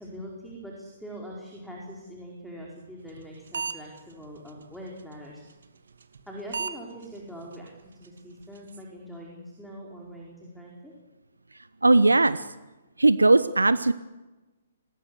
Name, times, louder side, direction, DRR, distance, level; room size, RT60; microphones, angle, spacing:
voice 1, 0.0-5.5 6.3-10.9, equal, ahead, -2 dB, 4.8 m, -43 dB
sound 1, 3.2-3.3 3.5-4.0 4.5-4.6 6.0-6.2 6.5-6.7 7.0-7.1 7.5-7.6 8.0-8.1 8.4-8.8, right 5 dB, 65° right, 2.4 m, -32 dB
voice 2, 11.8-12.4 13.0-13.9, right 2 dB, 85° right, 14 dB, 0.9 m, -19 dB
27.0 x 20.0 x 8.2 m, 1.1 s
figure-of-eight pair, 125°, 0 cm